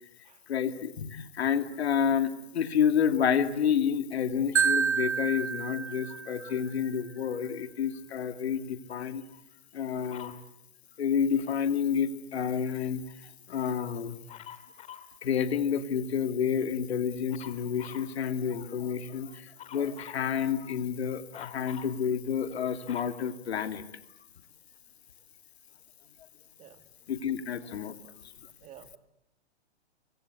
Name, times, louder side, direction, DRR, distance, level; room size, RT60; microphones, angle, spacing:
voice 1, 0.5-9.2 9.7-10.3 11.0-13.0 13.5-14.2 15.2-23.8 27.1-28.0, left 7 dB, 70° left, 8 dB, 2.7 m, -29 dB
Marimba xylophone, 4.6-6.6, right 6 dB, 90° right, 1.6 m, -28 dB
Dog, 10.1-10.5 14.3-15.1 17.3-18.1 19.6-20.3 21.3-22.0 22.5-24.0 24.8-24.9, left 10 dB, 20° left, 2.1 m, -47 dB
voice 2, 28.6-29.0, right 11 dB, 20° right, 11 dB, 1.6 m, -51 dB
28.5 x 24.5 x 8.3 m, 0.79 s
hypercardioid pair, 140°, 33 cm